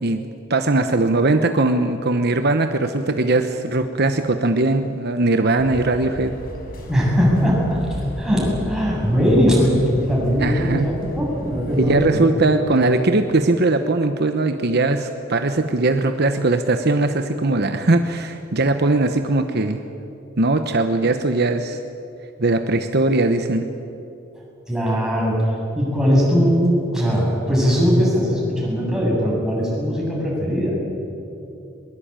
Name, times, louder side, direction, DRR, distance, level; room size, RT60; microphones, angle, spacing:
voice 1, 0.5-6.3 10.4-10.9 11.8-19.8 20.4-21.8 22.4-23.7, right 2 dB, 55° right, 7 dB, 1.0 m, -20 dB
sound 1, 5.6-12.1, equal, 50° left, 5.3 m, -34 dB
voice 2, 6.9-12.3 24.7-25.5 25.8-30.8, equal, 5° right, -4 dB, 8.0 m, -20 dB
22.0 x 22.0 x 9.0 m, 2.8 s
head